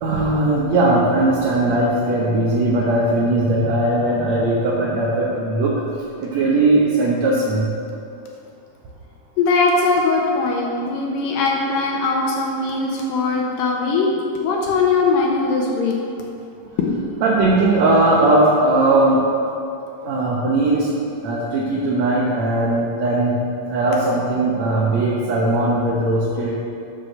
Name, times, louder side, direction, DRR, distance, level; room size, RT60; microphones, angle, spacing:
voice 1, 0.0-5.8 6.2-7.7 17.2-19.2 20.0-20.9 21.2-23.4 23.7-26.6, right 2 dB, 65° right, -4 dB, 2.0 m, -18 dB
voice 2, 9.4-14.1 14.4-16.0 16.8-16.9, left 4 dB, 75° left, -1 dB, 2.7 m, -20 dB
11.5 x 6.6 x 6.7 m, 2.7 s
omnidirectional pair, 4.1 m